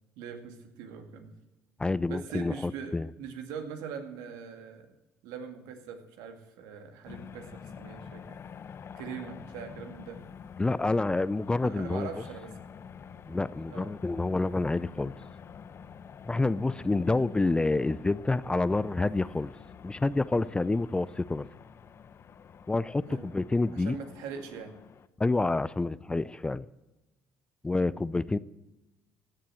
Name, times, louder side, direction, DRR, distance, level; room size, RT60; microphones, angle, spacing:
voice 1, 0.2-1.3 2.1-4.9 5.2-8.4 9.0-10.2 11.6-12.6 13.7-13.9 17.1-17.3 23.1-23.3 23.8-24.7 27.7-27.9, right 6 dB, 80° right, 6 dB, 2.2 m, -42 dB
voice 2, 1.8-3.1 10.6-12.1 13.3-15.1 16.2-19.5 19.8-21.5 22.7-24.0 25.2-26.6 27.6-28.4, left 2 dB, 15° left, 18 dB, 0.5 m, -28 dB
sound 1, 7.0-25.1, left 7 dB, 45° left, 0.8 m, -48 dB
16.0 x 7.5 x 7.6 m, 1.0 s
supercardioid pair, 80°, 6 cm